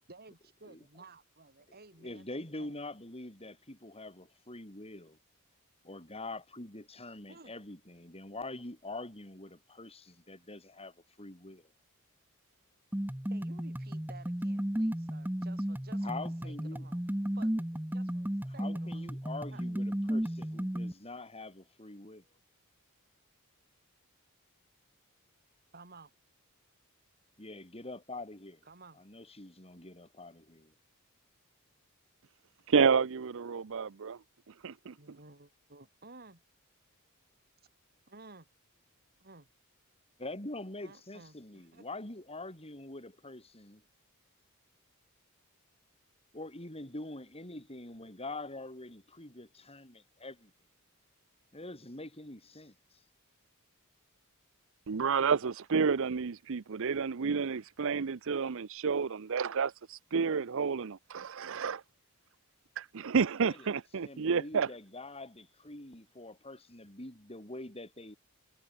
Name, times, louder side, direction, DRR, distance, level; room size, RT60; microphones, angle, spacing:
voice 1, 0.1-2.8 7.3-7.5 13.3-17.0 17.3-19.1 19.5-19.6 25.7-26.1 28.7-29.0 35.0-36.4 38.1-38.5 39.2-39.5 40.8-41.9, right 3 dB, 45° right, 7.0 m, -55 dB
voice 2, 2.0-5.2 5.8-11.7 16.0-16.9 18.6-22.2 27.4-28.6 29.0-30.7 40.2-43.8 46.3-50.5 51.5-52.7 63.5-63.7 64.0-68.2, left 2 dB, 25° left, 6.5 m, -45 dB
sound 1, 12.9-20.9, equal, 10° right, 0.9 m, -34 dB
voice 3, 32.7-34.2 34.6-35.2 54.9-61.8 62.8-64.7, right 5 dB, 60° right, 0.6 m, -30 dB
head